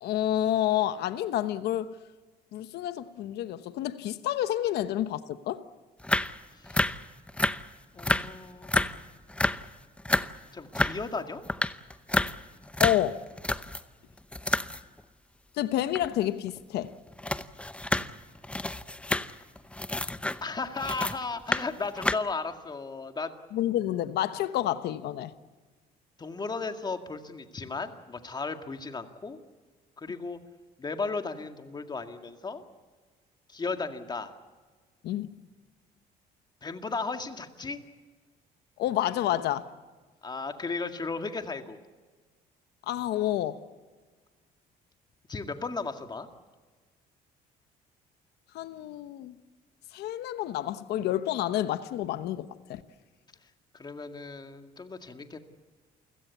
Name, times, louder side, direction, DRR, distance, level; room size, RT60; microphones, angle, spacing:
voice 1, 0.0-2.0 2.5-5.6 12.8-13.2 15.5-16.9 23.5-25.3 35.0-35.3 38.8-39.7 42.9-43.6 48.5-49.3 49.9-52.8, left 12 dB, 75° left, 1.0 m, -29 dB
sound 1, 6.0-6.4 6.6-7.7 8.0-8.3 8.6-9.0 9.3-9.7 10.0-10.3 10.7-11.0 11.4-13.8 14.2-15.0 16.0-16.1 16.6-16.7 16.8-21.2 21.5-21.7 22.0-22.2, left 1 dB, 5° left, 0.8 m, -29 dB
voice 2, 6.5-6.9 7.9-9.0 10.5-11.4 20.4-23.4 26.2-29.4 30.0-30.4 30.8-32.6 33.5-34.3 36.6-37.8 40.2-41.8 45.3-46.3 53.7-55.4, left 4 dB, 25° left, 2.1 m, -35 dB
29.0 x 16.5 x 8.4 m
cardioid pair, 110°, 17 cm